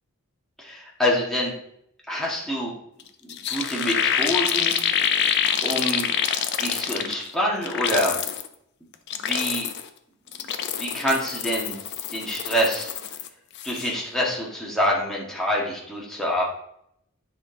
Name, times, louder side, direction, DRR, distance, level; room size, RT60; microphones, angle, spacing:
voice 1, 0.6-1.5 2.1-2.7 3.2-4.8 5.6-6.1 6.6-8.2 9.1-9.7 10.7-11.8 12.1-12.9 13.6-16.4, equal, ahead, -4 dB, 1.7 m, -26 dB
sound 1, 3.0-3.1 3.3-7.3 7.6-8.5 8.9-9.9 10.3-13.3 13.5-13.9, left 8 dB, 50° left, 0.6 m, -26 dB
9.7 x 5.4 x 4.0 m, 0.74 s
head